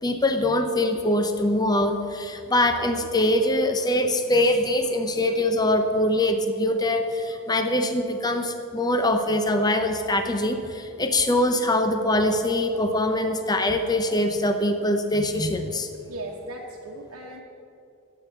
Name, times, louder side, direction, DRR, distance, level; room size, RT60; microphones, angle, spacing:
voice 1, 0.0-15.9, left 1 dB, 20° left, 6 dB, 0.7 m, -23 dB
voice 2, 16.0-17.4, right 1 dB, 70° right, -2 dB, 1.1 m, -38 dB
10.5 x 8.5 x 8.1 m, 2.6 s
head